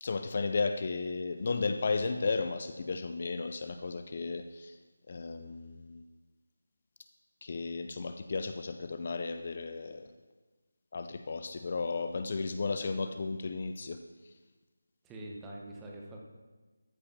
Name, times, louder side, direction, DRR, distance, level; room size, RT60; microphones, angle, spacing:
voice 1, 0.0-4.7 5.1-6.0 7.4-10.1 10.9-14.0, left 4 dB, 40° left, 8 dB, 0.5 m, -34 dB
voice 2, 15.0-16.2, right 1 dB, 10° right, -2 dB, 0.9 m, -45 dB
13.5 x 5.0 x 6.0 m, 1.3 s
figure-of-eight pair, 170°, 0 cm